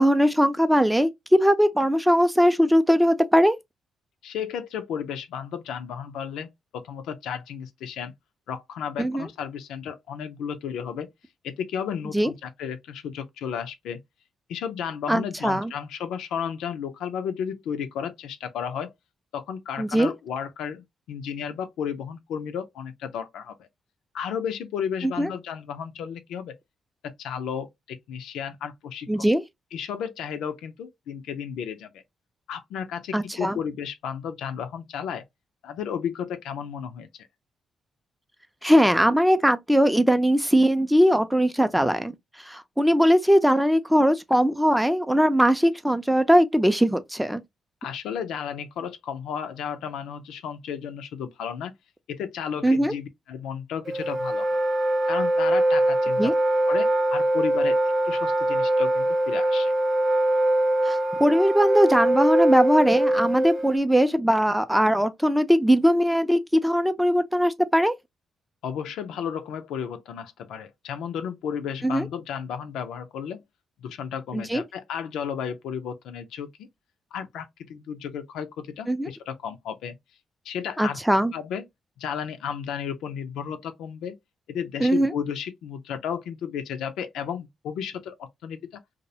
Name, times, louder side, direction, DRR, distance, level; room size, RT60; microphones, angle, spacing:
voice 1, 0.0-3.6 9.0-9.2 12.1-12.3 15.1-15.7 19.8-20.1 25.2-25.3 29.1-29.4 33.1-33.6 38.6-42.1 42.5-47.4 52.6-52.9 56.2-56.3 60.9-67.9 71.8-72.1 74.3-74.6 78.9-79.1 80.8-81.3 84.8-85.1, equal, 5° right, 0.4 m, -20 dB
voice 2, 4.2-8.1 8.5-11.1 11.4-14.0 14.5-18.9 19.3-23.7 24.1-26.6 27.0-29.3 29.7-32.0 32.5-35.2 35.6-37.3 47.8-51.7 52.1-54.6 55.1-56.3 56.7-57.8 58.0-59.7 68.6-73.4 73.8-76.7 77.1-79.9 80.5-81.0 81.3-81.7 82.0-84.2 84.5-88.8, left 8 dB, 85° left, 0.3 m, -33 dB
Wind instrument woodwind instrument, 53.9-63.8, right 1 dB, 60° right, 0.6 m, -23 dB
2.3 x 2.0 x 2.7 m
supercardioid pair, 60°, 0 cm